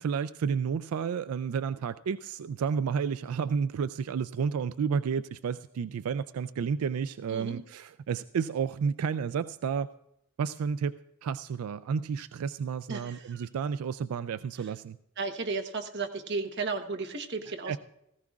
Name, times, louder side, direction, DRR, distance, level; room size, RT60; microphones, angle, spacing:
voice 1, 0.0-9.9 10.4-10.9 11.2-15.0 17.7-17.8, right 6 dB, 90° right, 13 dB, 0.3 m, -31 dB
voice 2, 7.3-7.6 12.9-13.5 15.2-17.8, right 4 dB, 55° right, 5 dB, 1.1 m, -34 dB
18.0 x 15.0 x 2.4 m, 0.84 s
head